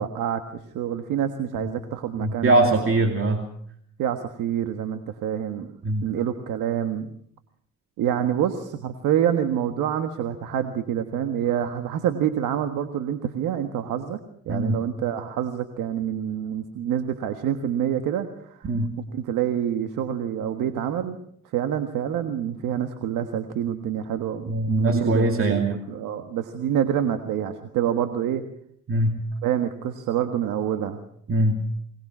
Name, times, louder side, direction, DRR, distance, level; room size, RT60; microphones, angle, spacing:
voice 1, 0.0-2.9 4.0-5.7 6.0-7.1 8.0-14.2 14.4-21.2 21.5-28.4 29.4-31.0, right 9 dB, 90° right, 7 dB, 1.6 m, -27 dB
voice 2, 2.2-3.4 5.8-6.1 14.5-14.8 18.6-18.9 24.5-25.8 28.9-29.2 31.3-31.6, right 1 dB, 45° right, 4 dB, 2.6 m, -22 dB
23.0 x 20.0 x 6.2 m, 0.66 s
cardioid pair, 90°, 30 cm